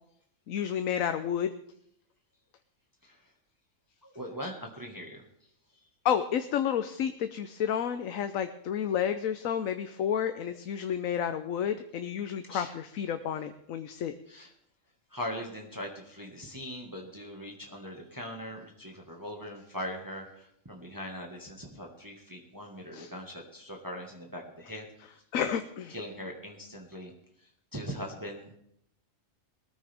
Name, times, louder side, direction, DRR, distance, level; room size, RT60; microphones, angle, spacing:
voice 1, 0.5-1.5 6.0-14.1 22.9-23.1 25.3-26.0, left 8 dB, 80° left, 9 dB, 1.1 m, -31 dB
voice 2, 4.0-5.2 12.5-12.7 14.3-14.5 15.1-24.8 25.9-27.1 27.7-28.5, equal, 15° right, 1 dB, 1.7 m, -40 dB
20.5 x 14.0 x 3.6 m, 0.72 s
omnidirectional pair, 1.4 m